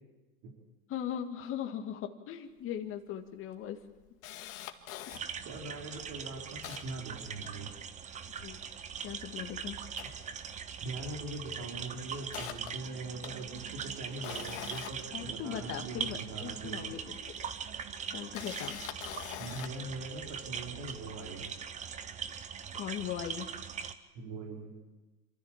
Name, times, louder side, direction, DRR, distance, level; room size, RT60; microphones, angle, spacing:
voice 1, 0.9-3.8 8.4-8.6 9.0-9.8 15.1-17.5 18.1-18.9 22.7-23.5, left 9 dB, 30° left, 4 dB, 1.9 m, -39 dB
Camera, 2.6-2.7 3.0-3.1 3.6-5.2 5.8-5.9 6.2-7.8 8.2-9.4 9.8-11.0 11.2-11.5 11.9-16.0 17.0-17.1 18.1-19.9 20.4-20.6, left 12 dB, 60° left, 2.0 m, -45 dB
sound 1, 5.1-23.9, right 7 dB, 15° right, 0.8 m, -41 dB
voice 2, 5.4-7.7 10.8-16.9 19.4-21.5 24.1-24.8, right 2 dB, 40° right, 0 dB, 4.2 m, -42 dB
27.5 x 13.5 x 7.3 m, 1.2 s
hypercardioid pair, 130°, 45 cm